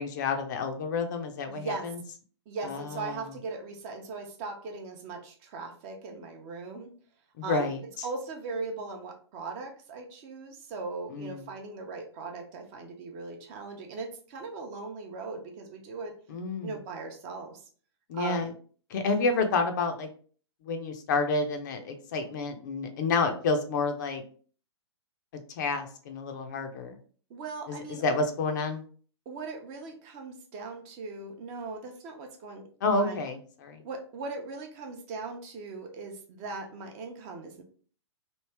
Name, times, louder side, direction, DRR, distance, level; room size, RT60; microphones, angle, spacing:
voice 1, 0.0-2.0 2.6-3.2 7.4-8.1 11.1-11.4 16.3-16.8 18.1-18.5 18.9-20.1 20.6-24.2 25.6-27.0 27.7-28.8 32.8-33.8, left 3 dB, 40° left, 5 dB, 0.6 m, -29 dB
voice 2, 1.5-1.9 2.5-6.9 7.4-7.7 8.0-16.1 16.6-17.6 18.2-18.5 27.3-28.0 29.3-33.2 33.8-37.6, right 3 dB, 30° right, 3 dB, 0.7 m, -39 dB
3.1 x 2.7 x 3.3 m, 0.43 s
figure-of-eight pair, 115°, 15 cm